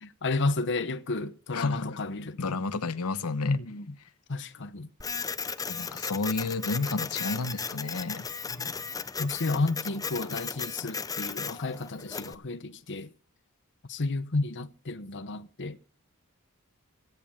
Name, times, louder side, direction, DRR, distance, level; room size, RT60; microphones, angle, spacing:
voice 1, 0.0-2.6 3.4-3.9 4.3-4.9 8.5-8.7 9.2-13.1 13.9-15.8, left 3 dB, 55° left, 1.0 m, -31 dB
voice 2, 1.5-2.0 2.4-3.6 5.7-8.2, left 3 dB, 90° left, 0.9 m, -31 dB
Printer, 5.0-12.4, left 5 dB, 15° left, 0.6 m, -36 dB
16.0 x 9.4 x 7.2 m
head